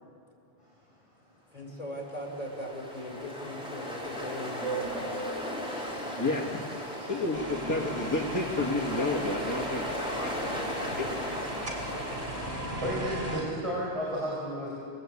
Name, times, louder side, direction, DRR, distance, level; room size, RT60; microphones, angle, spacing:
voice 1, 1.5-5.2 5.6-6.2 7.0-7.1, left 1 dB, 40° left, -2 dB, 6.2 m, -40 dB
Ocean, 2.0-13.1, equal, 5° right, 4.3 m, -36 dB
voice 2, 5.6-6.3 6.8-7.1 9.5-9.6 12.8-14.7, equal, 30° right, -6 dB, 6.0 m, -34 dB
voice 3, 6.2-6.6 7.1-11.4, left 2 dB, 20° left, -2 dB, 1.9 m, -31 dB
sound 1, 7.3-13.4, right 1 dB, 55° right, 4.0 m, -37 dB
29.5 x 20.5 x 8.7 m, 2.5 s
omnidirectional pair, 1.0 m